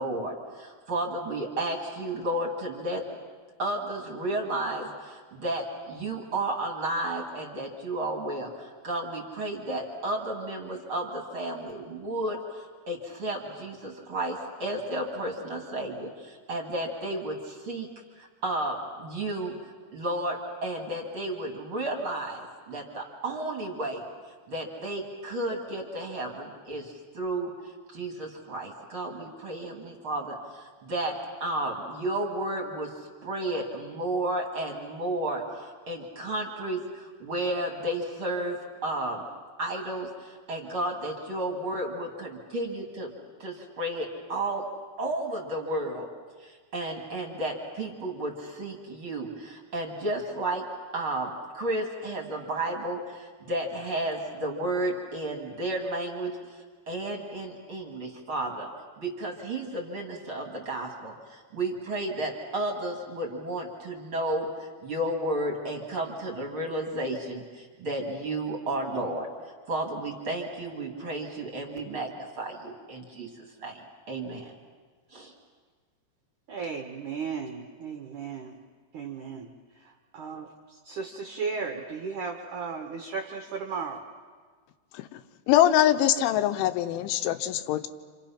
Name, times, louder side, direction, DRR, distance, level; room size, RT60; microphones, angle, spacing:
voice 1, 0.0-3.0 3.6-17.9 18.2-19.5 19.9-24.0 24.5-27.5 27.9-32.9 33.2-39.3 39.6-43.1 43.4-44.6 45.0-46.1 46.4-50.7 50.9-56.4 56.9-58.7 59.0-69.3 69.7-73.3 73.6-74.5 75.1-75.3, right 1 dB, 35° right, 1 dB, 2.3 m, -32 dB
voice 2, 76.5-78.6 78.9-79.5 79.8-84.0, right 5 dB, 70° right, 3 dB, 1.9 m, -35 dB
voice 3, 85.5-87.9, left 12 dB, 85° left, 9 dB, 3.3 m, -23 dB
28.0 x 28.0 x 5.9 m, 1.5 s
omnidirectional pair, 5.4 m